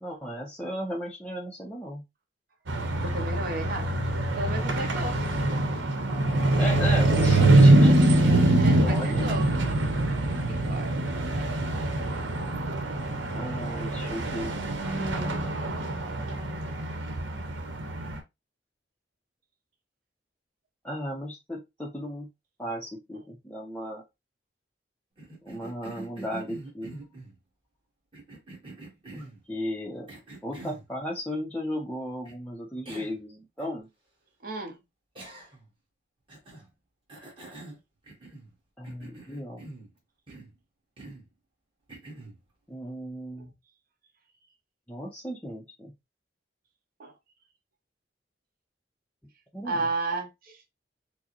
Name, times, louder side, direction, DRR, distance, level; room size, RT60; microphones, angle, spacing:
voice 1, 0.0-2.0 6.6-8.0 8.8-9.3 13.3-14.6 14.9-15.5 20.8-22.3 22.6-24.0 25.4-27.0 29.1-30.1 30.4-33.9 38.8-39.6 42.7-43.5 44.9-45.9 49.5-49.9, equal, 10° left, 0.5 m, -35 dB
sound 1, 2.7-18.2, right 2 dB, 85° right, 0.8 m, -24 dB
voice 2, 3.0-3.9 4.3-5.2 8.5-9.5 10.5-11.0 11.3-11.5 34.4-34.8 47.0-47.1 49.6-50.6, right 2 dB, 50° right, 0.8 m, -33 dB
Cough, 25.2-27.4 28.1-29.4 30.1-30.9 32.2-32.4 32.8-33.2 33.6-33.7 35.1-35.7 36.3-36.7 37.1-38.5 38.8-39.9 40.3-40.6 41.0-41.3 41.9-42.4, right 2 dB, 30° right, 1.3 m, -45 dB
4.6 x 2.0 x 2.9 m
head